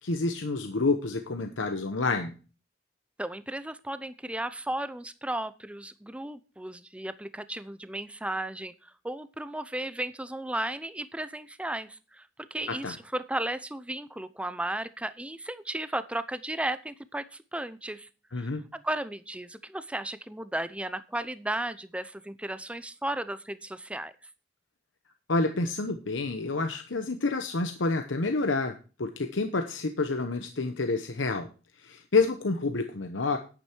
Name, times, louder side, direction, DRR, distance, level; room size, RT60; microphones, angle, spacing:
voice 1, 0.0-2.3 12.7-13.0 18.3-18.6 25.3-28.7 29.0-31.5 31.8-33.4, left 3 dB, 90° left, 7 dB, 1.0 m, -28 dB
voice 2, 3.2-18.1 18.4-24.1, right 1 dB, 5° right, 13 dB, 0.6 m, -35 dB
10.0 x 9.0 x 4.5 m, 0.35 s
head